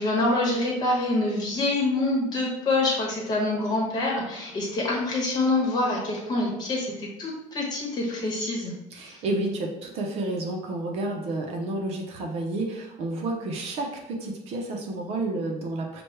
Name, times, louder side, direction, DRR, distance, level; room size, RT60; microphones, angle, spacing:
voice 1, 0.0-8.7 9.0-9.2, left 2 dB, 30° left, -2 dB, 1.1 m, -26 dB
voice 2, 8.9-16.0, right 2 dB, 50° right, 1 dB, 0.7 m, -30 dB
5.8 x 2.3 x 3.2 m, 0.92 s
cardioid pair, 170°, 13 cm